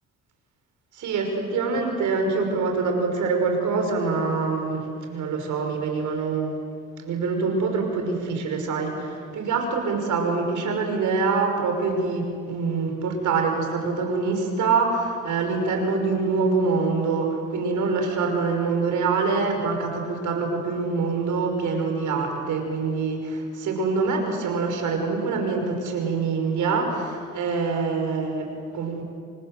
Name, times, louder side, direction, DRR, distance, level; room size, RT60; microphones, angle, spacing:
voice 1, 0.9-29.0, right 4 dB, 75° right, 3 dB, 6.0 m, -25 dB
29.0 x 25.5 x 7.8 m, 2.3 s
cardioid pair, 90°, 30 cm